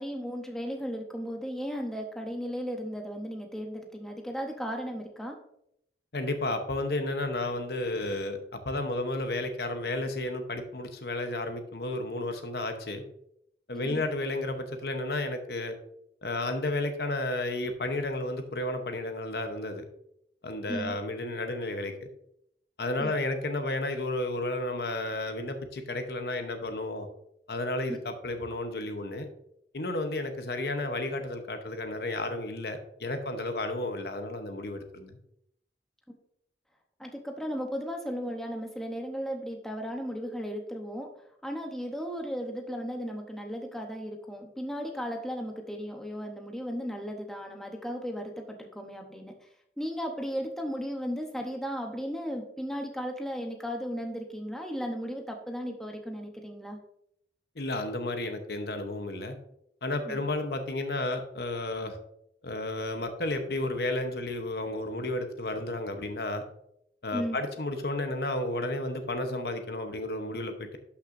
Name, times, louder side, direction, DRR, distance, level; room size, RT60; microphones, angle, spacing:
voice 1, 0.0-5.4 13.7-14.0 20.7-21.0 23.0-23.1 37.0-41.1 41.4-49.4 49.8-56.8 60.1-60.3 67.1-67.4, equal, 5° left, 2 dB, 0.8 m, -35 dB
voice 2, 6.1-13.0 13.7-15.8 16.2-19.8 20.4-21.9 22.8-27.1 27.5-29.3 29.7-35.2 57.6-59.4 59.8-62.0 62.4-66.4 67.0-70.8, left 2 dB, 60° left, 6 dB, 0.9 m, -32 dB
12.0 x 5.8 x 2.6 m, 0.75 s
head